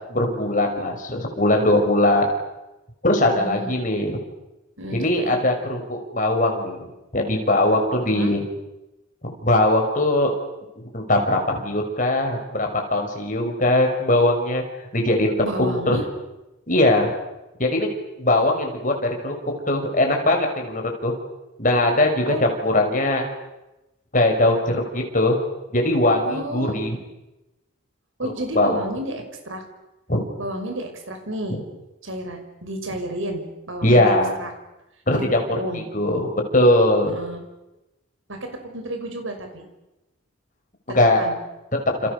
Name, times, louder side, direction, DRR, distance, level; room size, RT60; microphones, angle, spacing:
voice 1, 0.1-2.3 3.0-4.2 4.9-6.9 7.1-8.4 9.2-10.3 10.8-14.6 14.9-15.3 15.6-16.0 16.7-17.1 17.6-17.9 18.2-19.3 19.7-21.1 21.6-23.3 24.1-25.4 25.7-27.0 28.5-28.8 30.1-30.2 33.8-34.3 35.1-35.4 35.9-37.1 40.9-41.2, left 1 dB, 40° left, 2 dB, 6.1 m, -20 dB
voice 2, 3.2-3.7 4.8-5.4 8.0-8.4 15.4-16.0 22.3-22.4 26.3-26.8 28.2-29.6 30.4-31.6 32.0-34.5 35.1-35.3 35.5-35.9 37.0-37.4 38.3-39.6 40.9-41.3, right 1 dB, 70° right, 5 dB, 5.8 m, -31 dB
29.5 x 29.0 x 6.8 m, 0.97 s
head